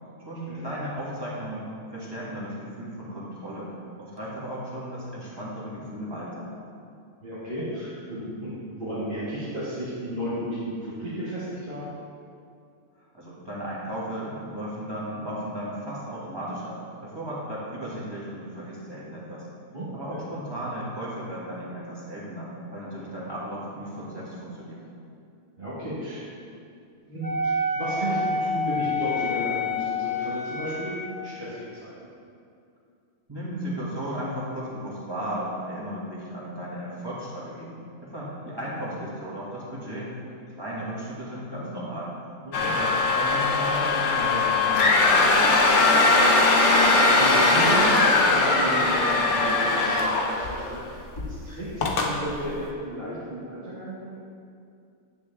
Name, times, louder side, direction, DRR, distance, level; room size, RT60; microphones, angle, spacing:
voice 1, 0.2-3.7 4.0-6.5 13.0-19.5 19.9-24.8 33.3-40.1 40.6-42.1 42.5-45.6, equal, 15° right, -8 dB, 2.1 m, -35 dB
voice 2, 7.2-11.9 19.7-20.2 25.6-26.2 27.1-31.9 42.4-42.7 46.7-51.0 51.3-54.2, equal, 35° right, -12 dB, 2.0 m, -33 dB
Wind instrument woodwind instrument, 27.2-31.1, left 2 dB, 25° left, 1.0 m, -28 dB
sound 1, 42.5-50.8 51.2-51.3 51.8-52.1, left 3 dB, 55° left, 1.2 m, -20 dB
10.0 x 7.4 x 3.5 m, 2.4 s
omnidirectional pair, 1.6 m